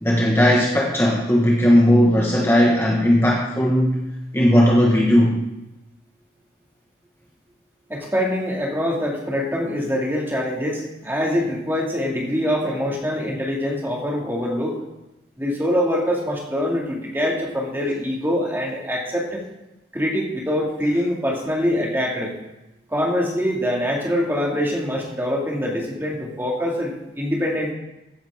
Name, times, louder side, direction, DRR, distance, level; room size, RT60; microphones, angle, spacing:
voice 1, 0.0-4.0 4.3-5.4, equal, 15° left, -3 dB, 1.4 m, -17 dB
voice 2, 7.9-14.8 15.4-19.4 19.9-22.3 22.9-27.7, equal, 10° right, -2 dB, 2.1 m, -24 dB
15.0 x 10.0 x 3.6 m, 0.96 s
head